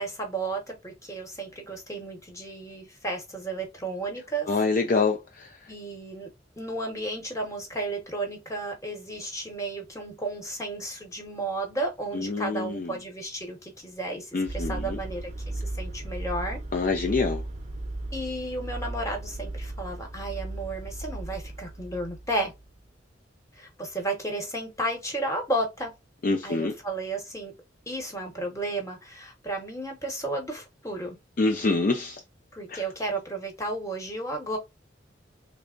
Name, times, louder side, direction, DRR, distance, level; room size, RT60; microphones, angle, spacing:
voice 1, 0.0-4.5 5.7-6.3 6.6-16.6 18.1-22.5 23.5-25.9 26.4-27.5 27.9-31.2 32.5-34.6, right 2 dB, 15° left, 1.0 m, -33 dB
voice 2, 4.5-5.5 12.1-12.9 14.3-15.0 16.7-17.4 26.2-26.8 31.4-32.2 32.7-32.8, left 3 dB, 45° left, 0.4 m, -26 dB
sound 1, 14.5-22.8, right 2 dB, 40° right, 0.7 m, -36 dB
3.3 x 2.0 x 3.7 m
head